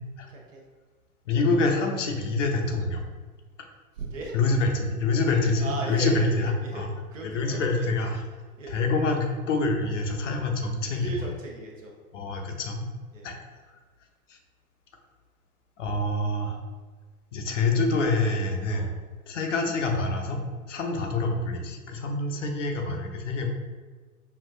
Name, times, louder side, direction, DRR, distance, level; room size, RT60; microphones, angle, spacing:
voice 1, 0.3-0.6 3.9-4.3 5.6-7.9 8.6-8.8 10.8-11.9 13.1-13.3 18.7-18.9, right 2 dB, 60° right, -1 dB, 0.9 m, -37 dB
voice 2, 1.3-3.0 4.3-6.9 7.2-8.2 8.7-11.3 12.1-12.8 13.2-13.4 14.3-14.4 15.8-16.6 17.3-18.9 19.3-20.4 20.7-23.5, left 3 dB, 55° left, 2 dB, 0.7 m, -26 dB
5.4 x 2.4 x 2.5 m, 1.4 s
figure-of-eight pair, 105°, 44 cm